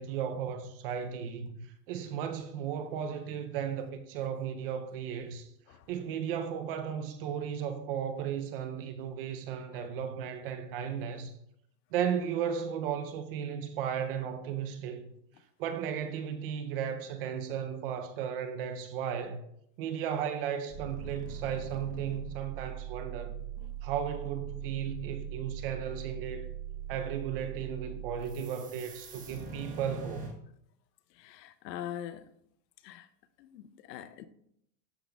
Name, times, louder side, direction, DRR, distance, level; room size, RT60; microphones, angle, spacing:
voice 1, 0.0-5.5 5.9-11.3 11.9-15.1 15.6-19.4 19.8-23.4 23.8-26.5 26.9-30.3, right 8 dB, 40° right, 0.4 m, -35 dB
sound 1, 20.7-30.3, right 9 dB, 15° right, 1.1 m, -41 dB
voice 2, 31.1-32.3 32.8-33.1 33.4-34.3, left 10 dB, 80° left, 0.7 m, -43 dB
12.5 x 5.2 x 2.2 m
supercardioid pair, 150°, 49 cm